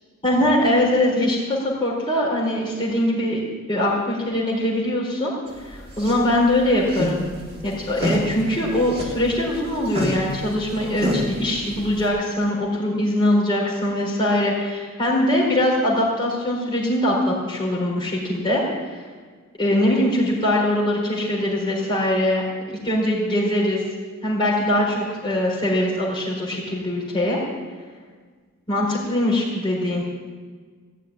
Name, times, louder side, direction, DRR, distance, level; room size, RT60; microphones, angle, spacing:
voice 1, 0.2-3.4 3.7-5.3 5.6-7.2 7.6-19.0 19.6-22.4 22.7-23.8 24.2-27.4 28.7-30.0, left 1 dB, 20° left, -4 dB, 4.4 m, -22 dB
sound 1, 5.5-12.1, equal, 25° right, 3.5 m, -29 dB
16.5 x 6.4 x 9.9 m, 1.5 s
head